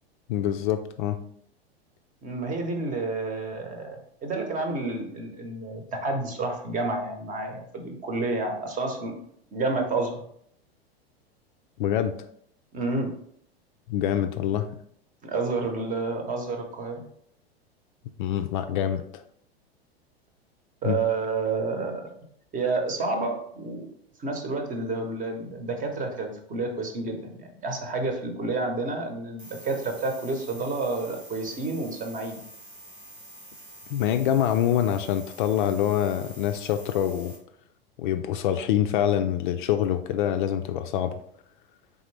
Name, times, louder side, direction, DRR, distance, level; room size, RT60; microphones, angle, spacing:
voice 1, 0.3-1.2 11.8-12.2 13.9-14.7 18.2-19.0 20.8-21.0 33.9-37.4 38.0-41.2, left 10 dB, 55° left, 8 dB, 0.4 m, -25 dB
voice 2, 2.2-9.1 9.5-10.2 12.7-13.1 15.2-17.0 20.8-22.1 22.5-23.9 24.2-32.4, right 3 dB, 25° right, 4 dB, 0.9 m, -30 dB
sound 1, 29.4-37.4, right 1 dB, 85° right, 1.8 m, -47 dB
3.9 x 3.5 x 3.2 m, 0.67 s
figure-of-eight pair, 95°, 31 cm